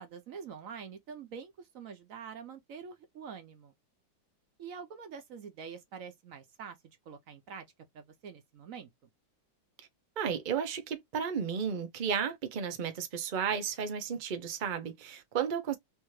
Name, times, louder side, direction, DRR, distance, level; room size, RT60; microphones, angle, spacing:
voice 1, 0.0-3.7 4.6-6.8 7.1-7.7 7.9-8.9, right 6 dB, 60° right, 0.9 m, -45 dB
voice 2, 10.2-15.8, right 7 dB, 80° right, 0.4 m, -33 dB
3.5 x 2.6 x 3.1 m
omnidirectional pair, 2.0 m